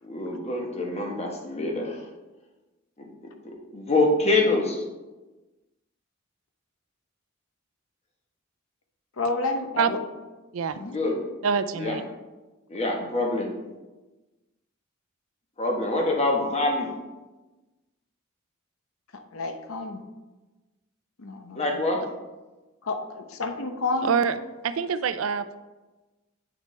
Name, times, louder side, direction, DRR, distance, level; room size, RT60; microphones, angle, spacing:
voice 1, 0.0-2.0 3.4-4.8 10.8-11.2 11.8-12.0 12.7-13.5 15.6-16.9 21.5-22.0, left 2 dB, 30° left, 1 dB, 1.3 m, -25 dB
voice 2, 9.1-10.0 10.8-10.9 13.0-13.1 19.1-20.0 21.2-21.8 22.8-24.2, left 3 dB, 85° left, 6 dB, 0.8 m, -30 dB
voice 3, 11.4-12.0 24.1-24.3 24.6-25.6, right 6 dB, 75° right, 12 dB, 0.4 m, -25 dB
8.9 x 6.0 x 3.3 m, 1.2 s
head